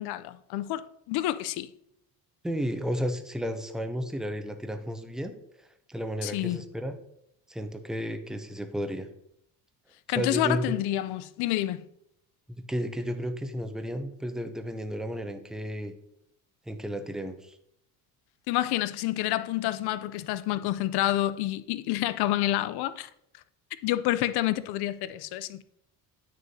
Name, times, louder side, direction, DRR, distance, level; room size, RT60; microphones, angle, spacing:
voice 1, 0.0-1.7 6.2-6.6 10.1-11.9 18.5-23.1 23.8-25.6, left 14 dB, 80° left, 0.5 m, -28 dB
voice 2, 2.4-5.3 5.9-7.0 7.5-9.1 10.2-10.7 12.5-15.9 16.7-17.5, equal, ahead, 0.5 m, -33 dB
9.0 x 6.5 x 2.7 m
cardioid pair, 150°, 38 cm